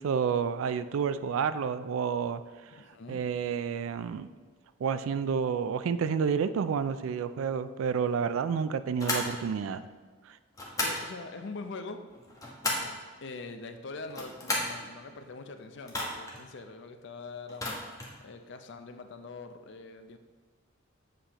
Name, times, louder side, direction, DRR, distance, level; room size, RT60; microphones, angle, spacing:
voice 1, 0.0-2.4 3.1-4.3 4.8-9.8, right 6 dB, 75° right, 13 dB, 0.3 m, -29 dB
voice 2, 2.7-3.3 10.8-12.0 13.2-17.7 18.2-20.2, left 3 dB, 60° left, 7 dB, 0.5 m, -43 dB
sound 1, 9.0-9.3 10.5-11.0 12.1-13.0 14.0-14.8 15.9-16.4 17.5-18.2, left 2 dB, 15° left, 1.0 m, -33 dB
7.6 x 6.5 x 2.9 m, 1.5 s
head